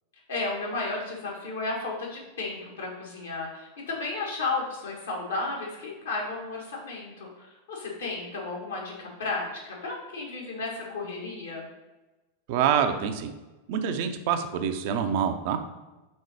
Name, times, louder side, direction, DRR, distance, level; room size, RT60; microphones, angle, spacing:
voice 1, 0.3-11.7, left 3 dB, 65° left, -3 dB, 1.7 m, -33 dB
voice 2, 12.5-13.3 13.7-15.6, right 8 dB, 50° right, 7 dB, 0.5 m, -26 dB
5.3 x 3.9 x 4.8 m, 1.1 s
figure-of-eight pair, 90°, 0 cm